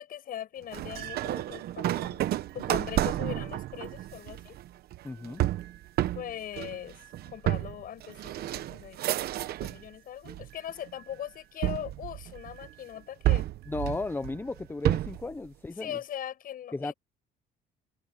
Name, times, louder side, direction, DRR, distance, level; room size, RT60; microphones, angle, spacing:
voice 1, 0.0-2.2 2.5-4.6 6.1-7.0 7.3-13.5 15.8-16.9, left 10 dB, 60° left, 8.0 m, -40 dB
sound 1, 0.7-9.9 10.3-10.9 11.6-12.7 13.2-15.3, right 14 dB, 70° right, 1.1 m, -31 dB
sound 2, 2.2-15.0 16.0-16.1, right 17 dB, 85° right, 8.0 m, -61 dB
voice 2, 5.0-5.4 13.7-16.0 16.7-16.9, left 3 dB, 10° left, 0.8 m, -35 dB
cardioid pair, 110°, 17 cm